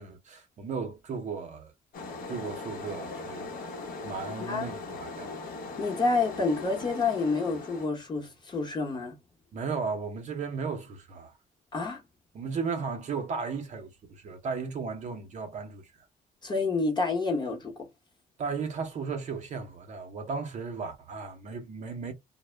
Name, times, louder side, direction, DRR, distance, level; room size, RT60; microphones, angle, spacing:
voice 1, 0.0-1.7 2.3-5.4 9.5-11.4 12.3-15.9 18.4-22.1, right 5 dB, 45° right, 0.6 m, -35 dB
sound 1, 1.9-7.9, left 3 dB, 55° left, 0.8 m, -39 dB
voice 2, 5.8-9.1 11.7-12.0 16.4-17.7, left 3 dB, 25° left, 0.9 m, -28 dB
2.1 x 2.0 x 3.1 m
cardioid pair, 110°, 17 cm